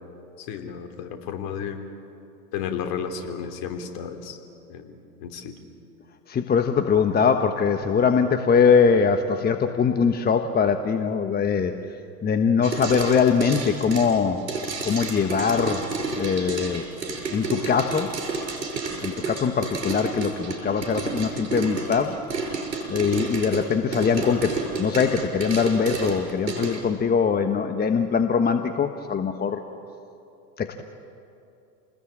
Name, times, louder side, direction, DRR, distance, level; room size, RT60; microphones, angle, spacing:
voice 1, 0.4-1.8 2.5-4.4 4.7-5.6, left 7 dB, 50° left, 6 dB, 3.4 m, -33 dB
voice 2, 6.3-11.7 12.2-14.4 14.8-15.8 16.2-16.8 17.3-18.1 19.0-22.2 22.9-29.6 30.6-30.8, left 6 dB, 20° left, 7 dB, 1.2 m, -22 dB
sound 1, 12.6-26.8, right 4 dB, 85° right, 6.3 m, -31 dB
29.0 x 20.0 x 8.7 m, 2.7 s
hypercardioid pair, 95°, 49 cm